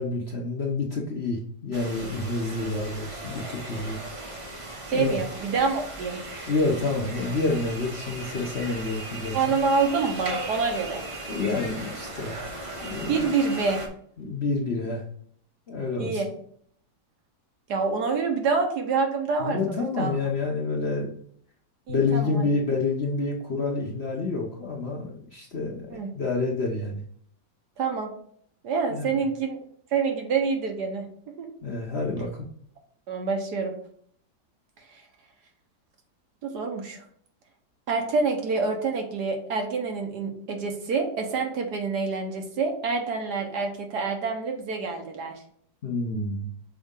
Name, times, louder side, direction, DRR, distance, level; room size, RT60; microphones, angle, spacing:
voice 1, 0.0-4.0 4.9-5.2 6.5-9.6 11.3-12.4 12.8-13.2 14.2-15.0 15.7-16.2 19.4-21.2 21.9-27.0 28.9-29.1 31.6-32.5 45.8-46.5, left 3 dB, 45° left, -1 dB, 0.9 m, -28 dB
sound 1, 1.7-13.9, right 2 dB, 30° right, 0.6 m, -37 dB
voice 2, 4.9-6.2 9.3-11.0 13.1-13.8 16.0-16.3 17.7-20.1 21.9-22.5 25.9-26.1 27.8-28.1 28.6-29.6 29.9-31.0 31.4-31.5 33.1-33.7 36.4-37.0 37.9-45.4, right 4 dB, 65° right, 3 dB, 1.5 m, -27 dB
6.2 x 4.1 x 3.7 m, 0.63 s
omnidirectional pair, 2.0 m